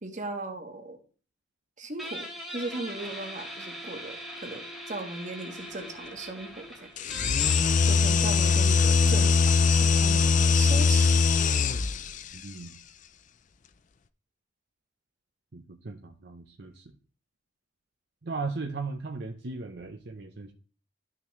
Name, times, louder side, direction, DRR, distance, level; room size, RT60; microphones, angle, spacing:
voice 1, 0.0-1.0 1.8-6.9 7.9-11.1, right 2 dB, 40° right, 4 dB, 1.5 m, -38 dB
Guitar, 2.0-9.2, equal, ahead, 2.2 m, -42 dB
sound 1, 7.0-12.2, left 4 dB, 45° left, 0.5 m, -22 dB
voice 2, 12.3-12.8 15.5-16.9 18.2-20.5, right 3 dB, 60° right, 3 dB, 0.8 m, -37 dB
12.5 x 6.0 x 3.2 m, 0.39 s
head